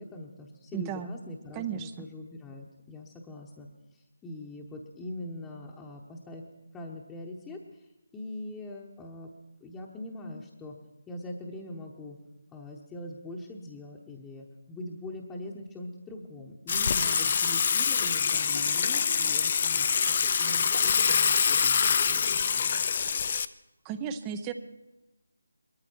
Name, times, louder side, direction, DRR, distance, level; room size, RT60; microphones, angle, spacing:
voice 1, 0.0-6.4 6.7-9.3 9.6-10.8 11.1-12.2 12.5-22.8, left 1 dB, 10° left, -3 dB, 1.0 m, -42 dB
voice 2, 0.7-1.1 1.6-2.1 23.8-24.5, right 8 dB, 15° right, 10 dB, 0.6 m, -34 dB
Water / Water tap faucet / Sink (filling or washing), 16.7-23.4, left 6 dB, 35° left, 0.5 m, -25 dB
20.0 x 13.5 x 4.6 m, 0.99 s
figure-of-eight pair, 155°, 0 cm